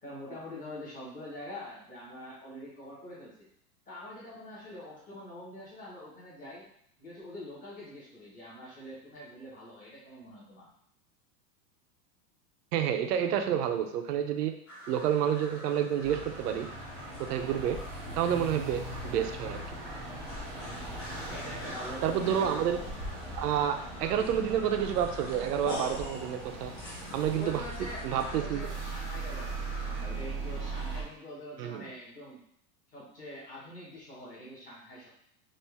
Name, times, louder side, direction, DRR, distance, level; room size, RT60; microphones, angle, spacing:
voice 1, 0.0-3.5 3.9-6.7 7.0-10.7 21.3-22.6 27.4-32.4 32.9-35.1, left 1 dB, 20° left, -7 dB, 1.3 m, -45 dB
voice 2, 12.7-14.5 14.9-16.7 17.2-17.8 18.1-19.6 22.0-22.8 23.4-26.7 27.1-27.6 28.0-28.7 31.6-31.8, right 9 dB, 90° right, 6 dB, 0.7 m, -29 dB
sound 1, 14.7-30.0, equal, 50° left, 1.5 m, -46 dB
sound 2, 16.0-31.0, right 2 dB, 15° right, 0.3 m, -39 dB
4.3 x 2.6 x 3.4 m, 0.67 s
supercardioid pair, 160°, 45 cm